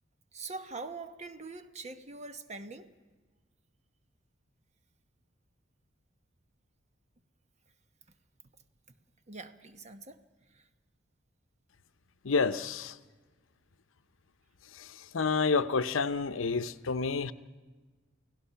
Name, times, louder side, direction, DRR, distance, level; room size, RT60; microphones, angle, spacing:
voice 1, 0.3-2.9 9.3-10.2 10.5-10.7, right 3 dB, 35° right, 9 dB, 1.1 m, -43 dB
voice 2, 12.2-13.0 14.7-17.3, left 4 dB, 90° left, 12 dB, 0.7 m, -29 dB
29.5 x 16.5 x 5.7 m, 1.3 s
head